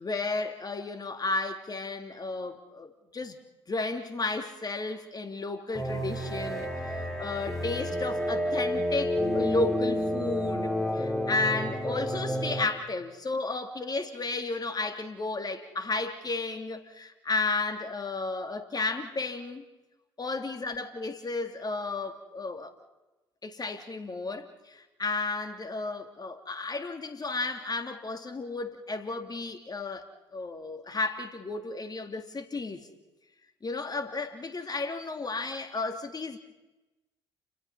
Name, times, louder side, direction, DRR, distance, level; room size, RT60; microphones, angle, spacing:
voice 1, 0.0-3.3 3.7-19.6 20.2-22.7 23.4-32.9 33.6-36.4, left 3 dB, 30° left, 6 dB, 2.8 m, -33 dB
sound 1, 5.7-12.6, left 1 dB, ahead, 7.3 m, -30 dB
29.0 x 22.5 x 5.6 m, 1.1 s
figure-of-eight pair, 50°, 13 cm